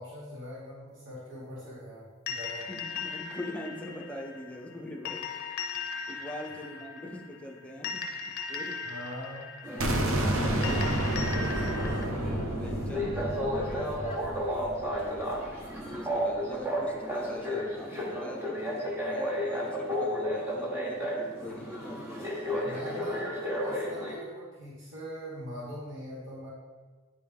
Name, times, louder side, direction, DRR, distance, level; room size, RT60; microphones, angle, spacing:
voice 1, 0.0-2.7 8.8-9.5 11.8-12.2 22.6-23.3 23.6-26.5, equal, 60° right, -7 dB, 1.5 m, -42 dB
sound 1, 2.3-12.1, left 5 dB, 50° left, 0.6 m, -38 dB
voice 2, 2.7-5.3 6.1-8.8 9.6-10.9 12.2-14.1 14.5-15.3 15.8-18.7 19.1-22.8, left 1 dB, 5° left, 0 dB, 0.6 m, -43 dB
sound 2, 9.6-24.1, equal, 10° right, 1.0 m, -33 dB
sound 3, 9.8-15.6, right 1 dB, 85° right, 0.7 m, -30 dB
9.1 x 3.4 x 3.4 m, 1.4 s
head